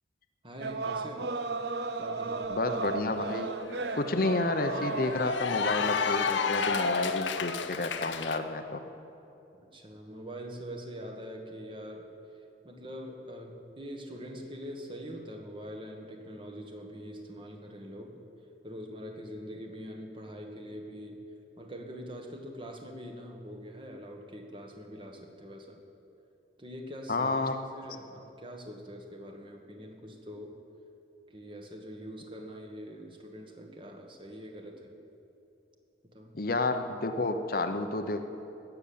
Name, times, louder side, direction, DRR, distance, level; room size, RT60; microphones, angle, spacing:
voice 1, 0.4-1.3 2.0-2.5 9.6-12.1 12.6-18.2 18.6-21.2 21.6-25.8 26.6-30.5 31.3-35.0 36.1-36.3, equal, 25° right, 2 dB, 1.4 m, -43 dB
sound 1, 0.6-5.6, right 4 dB, 65° right, 0.6 m, -35 dB
Cheering / Applause, 2.5-2.6 2.9-8.4, left 5 dB, 85° left, 0.8 m, -32 dB
voice 2, 2.5-3.5 3.9-8.8 27.1-27.6 36.3-38.2, left 2 dB, 50° left, 7 dB, 0.7 m, -30 dB
17.5 x 7.0 x 8.5 m, 2.8 s
head